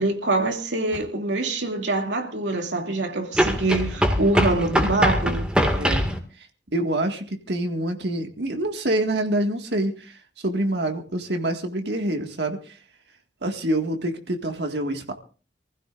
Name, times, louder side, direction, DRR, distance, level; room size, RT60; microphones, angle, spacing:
voice 1, 0.0-5.5, right 2 dB, 90° right, 2.7 m, -25 dB
sound 1, 0.9-1.0 3.3-6.2, equal, 5° right, 2.0 m, -22 dB
voice 2, 5.8-6.1 6.4-12.8 13.4-15.1, right 1 dB, 70° right, 1.9 m, -26 dB
26.5 x 15.5 x 2.5 m
head